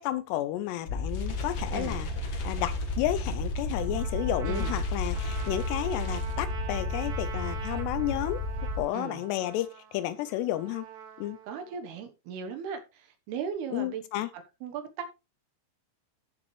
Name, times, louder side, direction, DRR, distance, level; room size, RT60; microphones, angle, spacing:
voice 1, 0.0-2.1 2.4-8.4 8.8-10.9 11.2-11.4 13.7-14.3, left 14 dB, 80° left, 2.6 m, -32 dB
sound 1, 0.9-6.9, left 4 dB, 60° left, 1.5 m, -46 dB
sound 2, 0.9-8.8, left 2 dB, 40° left, 2.8 m, -32 dB
Trumpet, 3.7-11.8, right 8 dB, 55° right, 2.5 m, -44 dB
voice 2, 4.5-4.8 8.9-9.2 11.5-14.0 14.3-15.1, right 7 dB, 70° right, 2.9 m, -37 dB
13.5 x 7.2 x 3.2 m
omnidirectional pair, 5.2 m